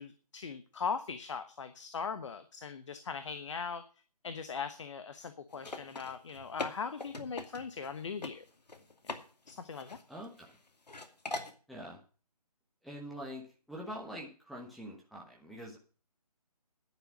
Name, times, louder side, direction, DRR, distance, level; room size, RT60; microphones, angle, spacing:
voice 1, 0.0-3.8 4.2-8.4 9.5-10.0, left 5 dB, 45° left, 10 dB, 1.1 m, -39 dB
sound 1, 5.5-7.9 8.2-8.3 8.7-9.2 9.5-10.5 10.9-11.5, left 3 dB, 85° left, 2.5 m, -41 dB
voice 2, 10.1-10.5 11.7-12.0 12.8-15.8, equal, ahead, -4 dB, 1.2 m, -44 dB
10.5 x 10.0 x 6.3 m, 0.38 s
figure-of-eight pair, 160°, 20 cm